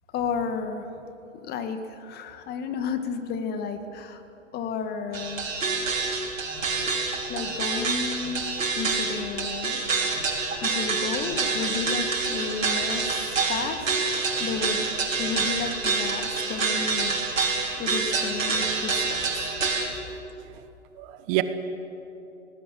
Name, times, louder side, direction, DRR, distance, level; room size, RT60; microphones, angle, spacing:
voice 1, 0.1-0.9 1.3-4.2 4.5-5.5 7.3-8.5 8.8-9.8 10.6-14.9 15.2-17.2 17.8-19.2 19.9-20.0, left 5 dB, 25° left, 8 dB, 1.8 m, -32 dB
sound 1, 5.1-19.9, right 4 dB, 75° right, 5.1 m, -27 dB
voice 2, 19.9-20.5 20.9-21.4, right 22 dB, 30° right, 11 dB, 1.1 m, -30 dB
25.0 x 19.0 x 7.6 m, 2.9 s
figure-of-eight pair, 120°, 40 cm